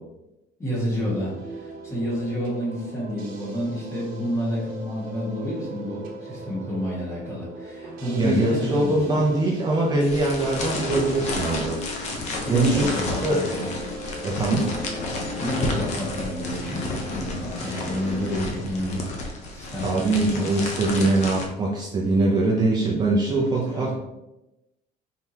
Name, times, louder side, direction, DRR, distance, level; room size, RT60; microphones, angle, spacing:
voice 1, 0.6-9.2 12.4-13.7 15.4-20.4 23.6-24.0, equal, 15° left, -6 dB, 1.6 m, -29 dB
sound 1, 0.9-18.4, right 1 dB, 60° right, 1.0 m, -39 dB
voice 2, 8.2-11.8 12.5-12.9 13.2-13.4 14.2-14.7 19.8-23.9, right 2 dB, 25° right, -3 dB, 0.5 m, -22 dB
sound 2, 10.0-21.5, left 2 dB, 40° left, 0.8 m, -31 dB
4.6 x 3.7 x 2.8 m, 0.95 s
cardioid pair, 175°, 17 cm